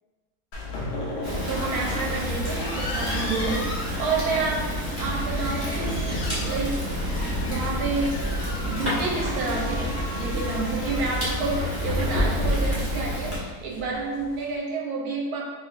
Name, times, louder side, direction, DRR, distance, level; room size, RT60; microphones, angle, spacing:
sound 1, 0.5-14.6, left 1 dB, 80° left, 0.5 m, -33 dB
Fire, 1.2-13.4, equal, 15° right, 0.6 m, -29 dB
voice 1, 1.4-4.7 5.0-6.8 7.4-8.2 8.7-15.4, right 3 dB, 75° right, -2 dB, 1.1 m, -29 dB
3.6 x 2.8 x 2.4 m, 1.3 s
omnidirectional pair, 1.7 m